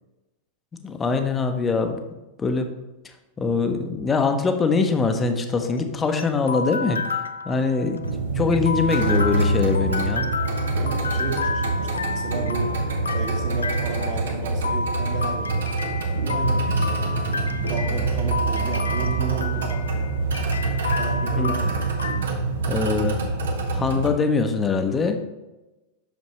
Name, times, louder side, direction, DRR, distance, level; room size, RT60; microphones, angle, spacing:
voice 1, 0.8-2.0 2.4-2.7 3.4-7.0 7.4-8.0 8.3-10.3 21.4-21.5 22.7-23.2 23.7-25.2, left 4 dB, 20° left, 6 dB, 0.8 m, -23 dB
sound 1, 5.5-22.2, left 4 dB, 70° left, 0.4 m, -31 dB
sound 2, 8.0-24.1, right 3 dB, 65° right, 0.9 m, -25 dB
voice 2, 10.8-12.8 13.1-15.6 16.1-17.1 17.7-19.9 20.9-21.8 23.3-23.5, right 4 dB, 45° right, -1 dB, 1.7 m, -33 dB
8.4 x 6.3 x 3.2 m, 1.0 s
figure-of-eight pair, 90°, 0 cm